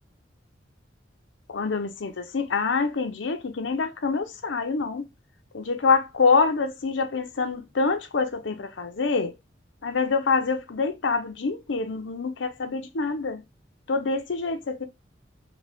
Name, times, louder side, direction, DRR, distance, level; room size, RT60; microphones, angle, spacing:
voice 1, 1.5-5.1 5.5-9.3 9.8-13.4 13.9-14.9, left 4 dB, 85° left, 0.6 m, -26 dB
3.8 x 2.2 x 3.4 m
head